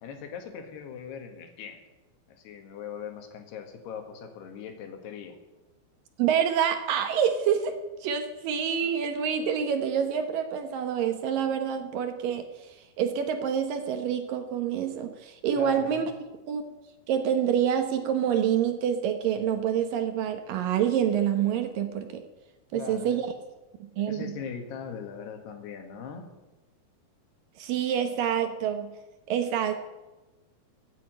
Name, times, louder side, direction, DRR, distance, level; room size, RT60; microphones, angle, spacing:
voice 1, 0.0-1.8 2.4-5.4 15.5-16.1 22.7-23.2 24.0-26.3, left 7 dB, 80° left, 5 dB, 3.8 m, -40 dB
voice 2, 6.2-16.1 16.5-16.6 17.1-22.2 22.7-23.3 23.8-24.3 27.6-28.9 29.3-29.7, right 8 dB, 70° right, 7 dB, 2.4 m, -27 dB
15.0 x 8.7 x 9.0 m, 1.1 s
omnidirectional pair, 4.7 m